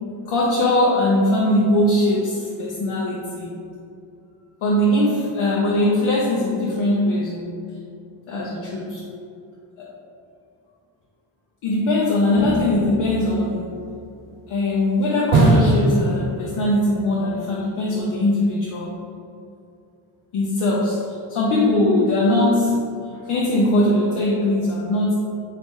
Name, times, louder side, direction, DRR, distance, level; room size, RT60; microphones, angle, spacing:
voice 1, 0.3-3.5 4.6-7.6 8.3-9.0 9.8-9.9 11.6-13.8 14.5-18.9 20.3-21.0 21.3-22.8 23.3-25.1, left 1 dB, 75° left, -5 dB, 0.7 m, -20 dB
sound 1, 12.4-14.1 15.3-16.9 17.1-17.2, right 2 dB, 75° right, 0.7 m, -21 dB
3.0 x 2.8 x 3.5 m, 2.4 s
cardioid pair, 55°, 49 cm